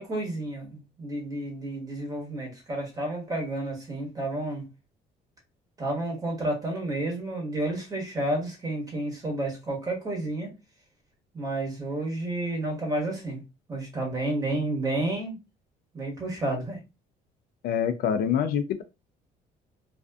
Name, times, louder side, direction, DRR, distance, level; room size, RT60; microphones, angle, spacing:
voice 1, 0.0-4.7 5.8-10.5 11.3-13.4 13.7-15.4 15.9-16.8, right 1 dB, 20° right, 1.2 m, -31 dB
voice 2, 17.6-18.8, left 8 dB, 65° left, 0.4 m, -25 dB
2.4 x 2.4 x 2.3 m
cardioid pair, 110°, 17 cm